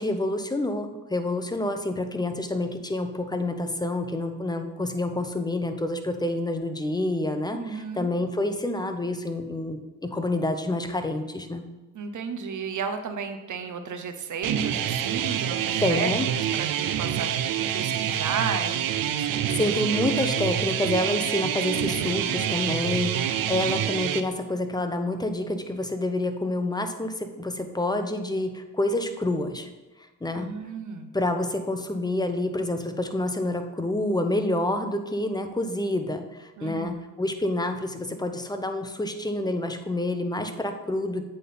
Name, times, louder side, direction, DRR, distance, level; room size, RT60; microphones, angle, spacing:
voice 1, 0.0-11.7 15.8-16.3 19.5-29.7 30.2-30.5 31.1-41.2, left 1 dB, 10° left, 6 dB, 0.9 m, -28 dB
voice 2, 7.5-8.1 11.9-16.1 16.6-19.8 30.3-31.1 36.6-36.9, right 5 dB, 60° right, 7 dB, 0.9 m, -33 dB
sound 1, 14.4-24.2, right 10 dB, 80° right, 0.6 m, -27 dB
8.3 x 3.8 x 5.6 m, 1.1 s
cardioid pair, 60°, 33 cm